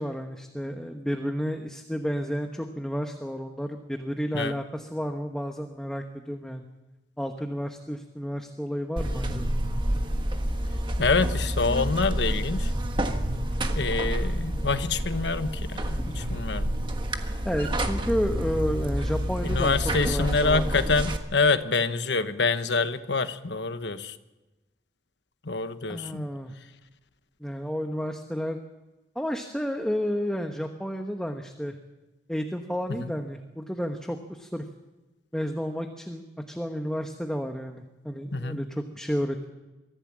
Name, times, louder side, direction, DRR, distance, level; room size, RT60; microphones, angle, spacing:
voice 1, 0.0-6.7 7.2-9.5 17.4-19.7 20.0-20.7 25.9-26.5 27.4-28.6 29.1-31.8 32.3-34.6 35.3-39.5, equal, 5° left, 4 dB, 1.0 m, -31 dB
Buzz, 9.0-21.2, equal, 25° right, 1.4 m, -28 dB
voice 2, 11.0-12.7 13.7-16.7 19.4-24.1 25.4-26.3 38.3-38.6, left 4 dB, 75° left, 10 dB, 1.1 m, -26 dB
23.5 x 15.0 x 7.4 m, 1.1 s
head